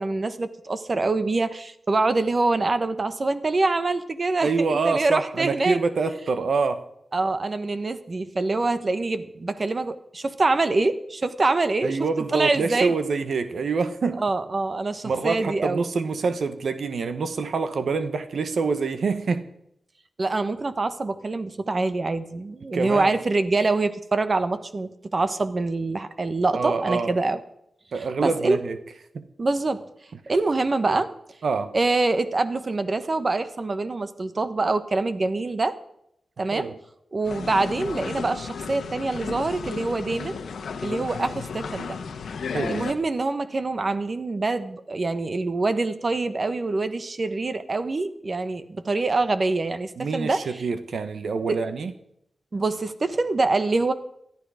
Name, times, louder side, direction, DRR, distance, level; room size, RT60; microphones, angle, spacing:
voice 1, 0.0-5.8 7.1-12.0 12.3-12.9 14.2-15.8 20.2-27.4 28.2-28.6 29.4-29.8 30.3-31.1 31.7-35.8 36.4-36.7 37.1-40.4 40.8-42.0 42.7-50.4 51.5-51.6 52.5-53.9, right 3 dB, 45° right, 11 dB, 1.2 m, -25 dB
voice 2, 4.4-6.8 11.8-14.2 15.0-19.4 22.7-23.2 26.5-27.1 27.9-28.8 29.1-29.3 31.4-31.7 36.5-36.7 42.5-42.8 50.0-51.9, right 4 dB, 75° right, 10 dB, 1.2 m, -26 dB
sound 1, 37.2-42.9, left 5 dB, 90° left, 1.2 m, -33 dB
18.5 x 12.5 x 5.0 m, 0.76 s
cardioid pair, 65°, 0 cm